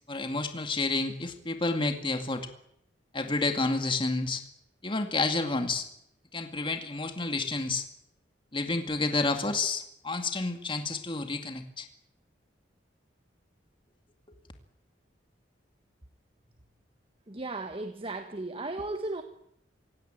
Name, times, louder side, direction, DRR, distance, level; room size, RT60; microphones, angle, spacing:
voice 1, 0.1-2.5 3.1-4.4 4.8-5.9 6.3-7.8 8.5-11.9, left 3 dB, 30° left, 6 dB, 2.3 m, -30 dB
voice 2, 17.3-19.2, right 2 dB, 30° right, 7 dB, 1.4 m, -35 dB
26.5 x 17.0 x 9.2 m, 0.75 s
head